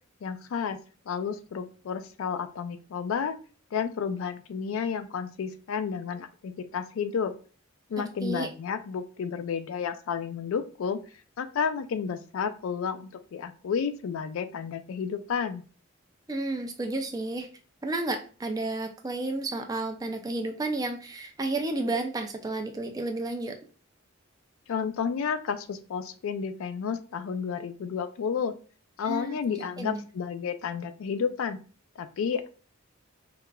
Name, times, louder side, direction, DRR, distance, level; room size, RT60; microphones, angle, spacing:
voice 1, 0.2-0.8 1.1-3.4 3.7-7.3 7.9-11.0 11.4-15.6 24.7-28.5 29.0-31.6 32.0-32.5, left 6 dB, 70° left, 10 dB, 0.3 m, -31 dB
voice 2, 16.3-17.5 17.8-23.6 29.1-29.4 29.8-30.0, right 2 dB, 15° right, 4 dB, 0.3 m, -31 dB
4.7 x 2.4 x 2.2 m, 0.39 s
head